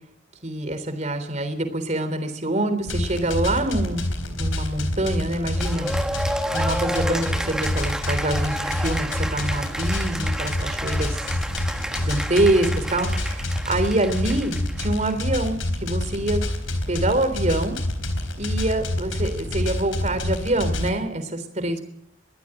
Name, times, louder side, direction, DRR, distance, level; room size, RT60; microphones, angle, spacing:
voice 1, 0.4-4.0 4.4-6.0 6.5-11.2 11.9-17.8 18.4-21.8, right 1 dB, 35° right, 9 dB, 3.6 m, -25 dB
sound 1, 2.9-20.9, left 1 dB, 90° left, 4.0 m, -27 dB
Cheering / Applause, 5.6-15.1, right 1 dB, 5° right, 1.3 m, -31 dB
22.5 x 15.0 x 9.0 m, 0.73 s
head